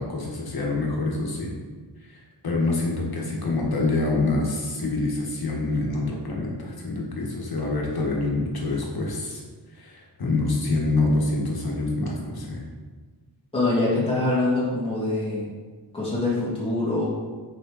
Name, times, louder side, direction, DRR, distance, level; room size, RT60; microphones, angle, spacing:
voice 1, 0.0-1.5 2.1-2.2 2.4-9.4 9.8-12.6, left 2 dB, 55° left, -1 dB, 1.5 m, -26 dB
voice 2, 13.5-15.5 15.9-17.1, left 2 dB, 10° left, -9 dB, 2.1 m, -24 dB
6.7 x 5.0 x 4.0 m, 1.4 s
wide cardioid pair, 115°, 43 cm